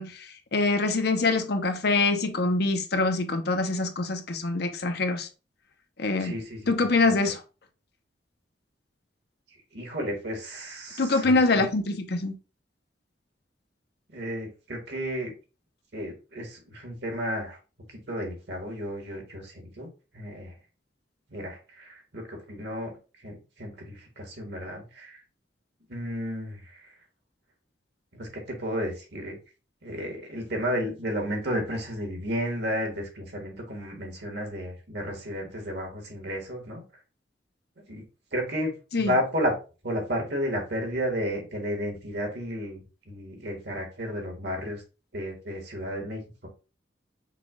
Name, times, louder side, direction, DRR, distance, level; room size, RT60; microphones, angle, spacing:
voice 1, 0.0-5.3 6.0-6.4 6.7-7.4 11.0-12.3 38.9-39.2, left 3 dB, 60° left, 0.8 m, -25 dB
voice 2, 6.2-7.1 9.7-11.3 14.1-15.3 15.9-17.6 18.1-20.5 21.3-23.0 23.2-25.2 25.9-26.9 28.1-29.3 29.8-36.8 37.9-38.0 38.3-39.5 39.8-42.8 43.1-44.8 45.1-46.5, equal, 65° right, 1.6 m, -32 dB
5.8 x 2.4 x 3.6 m
head